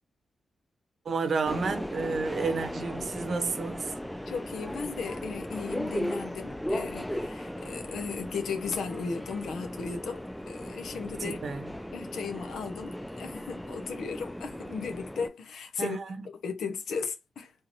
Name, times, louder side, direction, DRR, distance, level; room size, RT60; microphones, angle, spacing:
voice 1, 1.0-3.9 11.2-11.7 15.8-16.1, right 4 dB, 60° right, 0.8 m, -31 dB
Subway metro underground, 1.5-15.3, equal, 5° left, 0.4 m, -37 dB
voice 2, 4.3-11.4 11.9-16.0 16.4-17.5, left 5 dB, 85° left, 0.9 m, -36 dB
3.7 x 2.8 x 2.7 m
cardioid pair, 80°, 0 cm